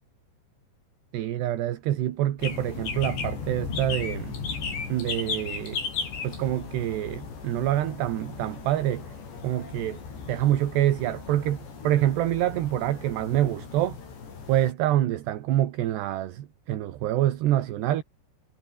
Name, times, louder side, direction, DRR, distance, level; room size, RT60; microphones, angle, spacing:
voice 1, 1.1-4.3 4.9-5.8 6.2-9.1 9.4-10.0 10.3-11.6 11.8-14.0 14.5-18.0, right 13 dB, 75° right, 3.7 m, -26 dB
sound 1, 2.4-14.7, left 5 dB, 80° left, 8.7 m, -36 dB
omnidirectional pair, 5.0 m